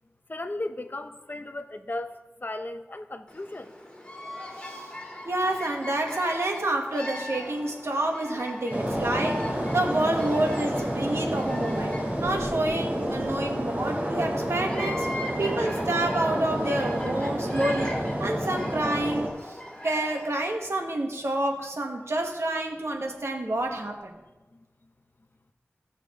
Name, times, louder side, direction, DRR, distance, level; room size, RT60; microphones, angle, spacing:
voice 1, 0.3-2.2 2.4-3.7, left 2 dB, 45° left, 8 dB, 0.7 m, -35 dB
Bird vocalization bird call bird song, 3.3-20.5, left 1 dB, 20° left, 2.8 m, -39 dB
voice 2, 4.6-4.9 5.2-24.1, right 1 dB, 75° right, 2 dB, 1.5 m, -29 dB
sound 1, 8.7-19.3, equal, 35° right, 3.2 m, -29 dB
16.5 x 6.5 x 3.7 m, 1.1 s
wide cardioid pair, 55°, 5 cm